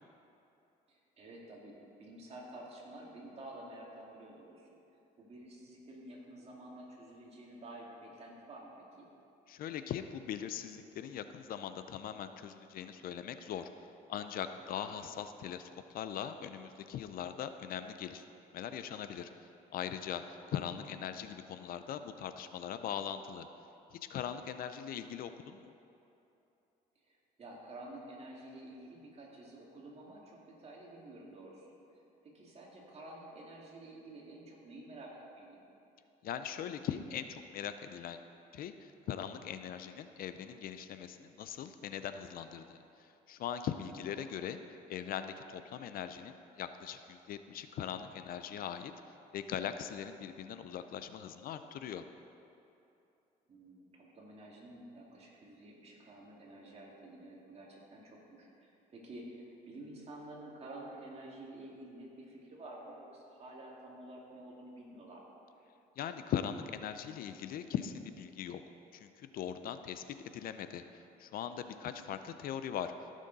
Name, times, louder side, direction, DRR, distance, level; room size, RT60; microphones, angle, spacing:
voice 1, 0.9-4.7 5.2-9.1 14.7-15.1 20.4-21.0 27.0-35.6 43.9-44.3 50.1-50.5 53.5-65.3 71.7-72.2, right 1 dB, 40° right, -3 dB, 2.3 m, -51 dB
voice 2, 9.5-13.7 14.1-18.3 18.5-19.3 19.7-23.5 23.9-25.7 36.2-38.2 38.5-44.6 44.9-48.9 49.3-52.0 66.0-68.6 68.9-70.0 70.3-72.9, left 9 dB, 60° left, 10 dB, 0.5 m, -40 dB
15.5 x 6.4 x 4.0 m, 2.8 s
cardioid pair, 110°, 17 cm